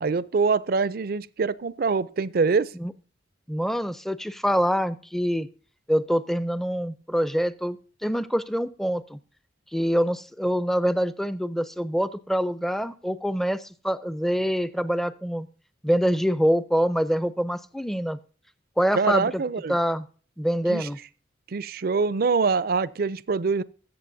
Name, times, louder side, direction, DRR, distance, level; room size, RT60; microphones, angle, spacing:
voice 1, 0.0-2.7 19.0-19.8 20.7-20.9 21.5-23.6, right 4 dB, 55° right, 0.4 m, -24 dB
voice 2, 3.5-5.5 5.9-9.2 9.7-15.5 15.8-18.2 18.8-19.4 19.7-20.1 20.4-21.0, equal, ahead, 0.4 m, -25 dB
21.0 x 7.5 x 2.7 m
head